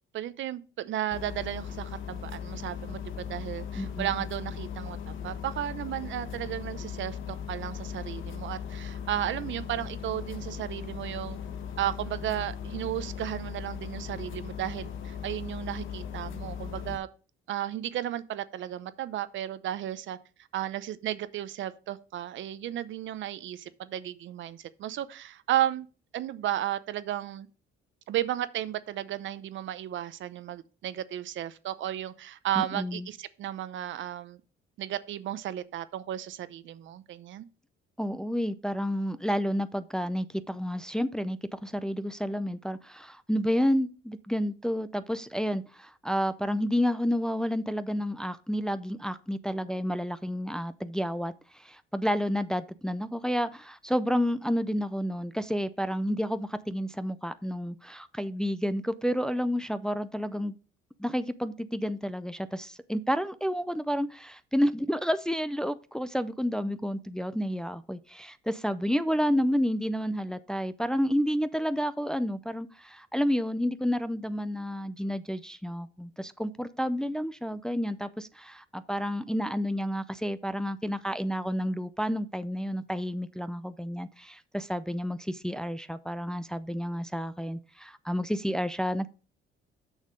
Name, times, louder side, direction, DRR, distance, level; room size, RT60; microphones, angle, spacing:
voice 1, 0.1-11.4 11.8-17.1 17.5-20.2 20.5-25.9 26.1-27.5 28.1-34.4 34.8-37.5, right 12 dB, 65° right, 0.7 m, -34 dB
sound 1, 1.1-17.0, left 8 dB, 75° left, 1.1 m, -38 dB
voice 2, 3.7-4.1 32.6-33.1 38.0-60.5 61.0-89.1, equal, 5° left, 0.5 m, -30 dB
6.6 x 6.5 x 5.1 m
cardioid pair, 105°, 21 cm